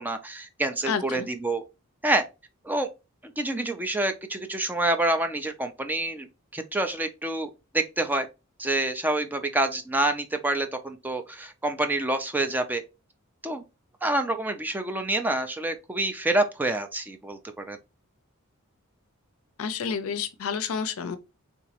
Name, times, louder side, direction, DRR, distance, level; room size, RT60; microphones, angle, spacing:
voice 1, 0.0-1.6 2.0-2.2 2.6-2.9 3.2-6.3 6.5-8.3 8.6-12.8 13.4-13.6 14.0-17.8, right 2 dB, 10° right, 0.4 m, -27 dB
voice 2, 0.9-1.3 19.6-21.2, left 6 dB, 70° left, 0.5 m, -30 dB
3.5 x 2.9 x 2.8 m
head